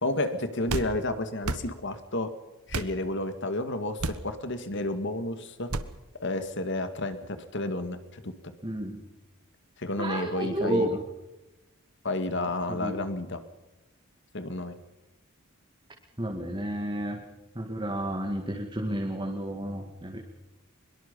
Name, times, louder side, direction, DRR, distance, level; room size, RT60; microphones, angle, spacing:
voice 1, 0.0-2.3 2.7-5.7 6.2-8.3 9.8-10.9 12.0-13.4 14.3-14.8, left 2 dB, 55° left, 9 dB, 2.1 m, -31 dB
sound 1, 0.7-0.9 1.4-1.7 2.7-2.9 4.0-4.3 5.7-5.9, right 2 dB, 85° right, 1.3 m, -31 dB
voice 2, 8.6-9.0 10.0-11.0 12.7-13.0 16.2-17.2 17.6-20.2, right 1 dB, 20° right, 2 dB, 2.1 m, -31 dB
23.5 x 22.5 x 5.5 m, 1.0 s
head